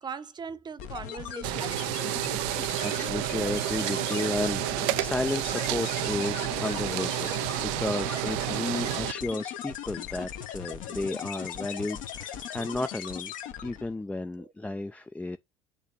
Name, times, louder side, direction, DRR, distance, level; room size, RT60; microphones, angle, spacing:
voice 1, 0.0-2.0 14.4-14.5, right 6 dB, 25° right, 0.8 m, -40 dB
sound 1, 0.8-13.9, left 10 dB, 55° left, 1.0 m, -39 dB
sound 2, 1.4-9.1, right 19 dB, 55° right, 0.5 m, -30 dB
voice 2, 2.5-7.3 7.6-13.3 13.6-15.4, left 2 dB, 10° left, 0.4 m, -33 dB
sound 3, 3.8-13.5, left 5 dB, 85° left, 0.7 m, -49 dB
8.3 x 3.2 x 5.5 m
figure-of-eight pair, 60°, 16 cm